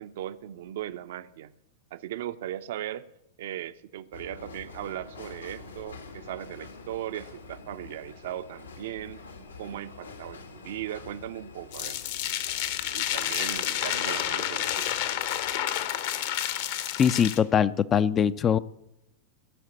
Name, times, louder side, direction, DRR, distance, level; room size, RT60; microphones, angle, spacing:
voice 1, 0.0-1.5 1.9-3.1 3.4-9.2 9.6-12.0 12.9-15.1, right 12 dB, 55° right, 0.6 m, -38 dB
sound 1, 4.1-15.6, left 4 dB, 75° left, 2.1 m, -47 dB
sound 2, 11.7-17.4, left 11 dB, 50° left, 1.1 m, -30 dB
voice 2, 17.0-18.6, left 8 dB, 25° left, 0.5 m, -22 dB
17.0 x 6.4 x 8.5 m
figure-of-eight pair, 90°, 0 cm